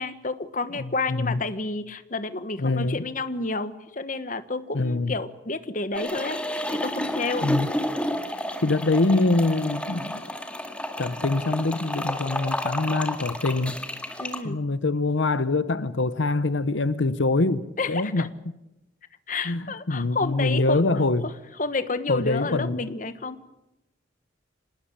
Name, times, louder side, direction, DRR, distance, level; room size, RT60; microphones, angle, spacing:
voice 1, 0.0-6.4 6.7-7.5 14.2-14.6 17.8-18.3 19.3-20.9 21.6-23.4, left 3 dB, 45° left, 1.4 m, -30 dB
voice 2, 0.8-1.4 2.6-3.0 4.7-5.1 7.4-7.7 8.6-10.2 11.0-13.8 14.4-18.3 19.4-21.3 22.1-22.9, left 2 dB, 85° left, 0.9 m, -24 dB
sound 1, 5.9-14.4, left 1 dB, 5° left, 2.1 m, -31 dB
26.0 x 20.0 x 8.8 m
head